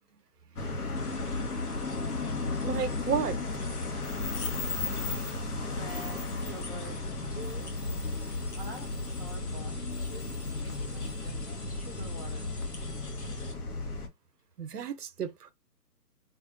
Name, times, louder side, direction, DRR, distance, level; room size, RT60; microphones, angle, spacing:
sound 1, 0.6-14.1, left 3 dB, 65° left, 1.1 m, -34 dB
sound 2, 1.0-13.5, left 3 dB, 45° left, 0.9 m, -49 dB
voice 1, 2.6-3.4 14.6-15.5, right 7 dB, 70° right, 0.7 m, -32 dB
voice 2, 5.7-7.0 7.2-7.8 8.6-11.4 11.7-12.5, right 1 dB, 25° left, 0.6 m, -46 dB
3.6 x 2.5 x 2.4 m
hypercardioid pair, 165°, 49 cm